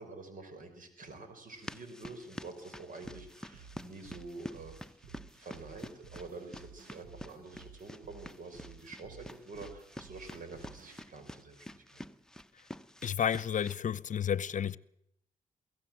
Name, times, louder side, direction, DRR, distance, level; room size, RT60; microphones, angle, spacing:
voice 1, 0.0-4.7 5.3-12.0, right 3 dB, 65° right, 5.6 m, -47 dB
sound 1, 1.5-13.8, equal, 5° left, 1.1 m, -49 dB
sound 2, 3.0-11.0, right 5 dB, 90° right, 1.9 m, -55 dB
voice 2, 13.0-14.8, left 8 dB, 60° left, 0.8 m, -31 dB
23.5 x 17.0 x 7.8 m
cardioid pair, 65°, 15 cm